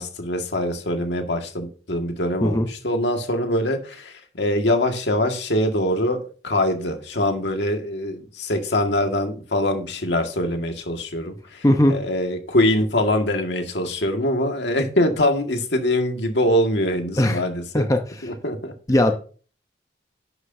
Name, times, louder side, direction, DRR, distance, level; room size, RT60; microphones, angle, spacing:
voice 1, 0.0-17.9 18.2-18.7, left 1 dB, 75° left, 1.8 m, -23 dB
voice 2, 11.6-12.0 17.2-17.4 17.7-18.0 18.9-19.2, left 1 dB, 20° left, 0.7 m, -18 dB
11.5 x 7.9 x 2.7 m
head